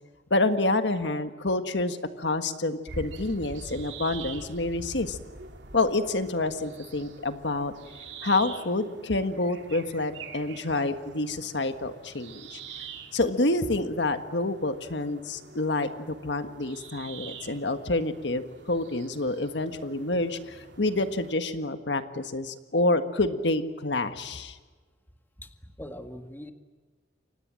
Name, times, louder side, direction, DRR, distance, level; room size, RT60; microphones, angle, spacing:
voice 1, 0.3-5.2 5.7-7.7 8.2-12.6 13.1-15.9 16.2-24.6, left 2 dB, 70° left, 9 dB, 1.6 m, -28 dB
sound 1, 2.9-21.3, right 4 dB, 70° right, 2.9 m, -45 dB
voice 2, 25.4-26.5, left 1 dB, 10° left, 7 dB, 1.8 m, -42 dB
29.5 x 24.5 x 7.6 m, 1.4 s
head